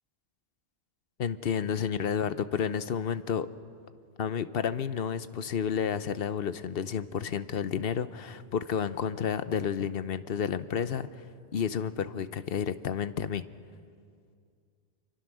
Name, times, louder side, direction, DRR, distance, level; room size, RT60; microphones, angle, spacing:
voice 1, 1.2-3.5 4.2-11.2 11.5-13.4, left 7 dB, 70° left, 13 dB, 0.9 m, -31 dB
27.0 x 24.0 x 6.2 m, 2.3 s
omnidirectional pair, 1.0 m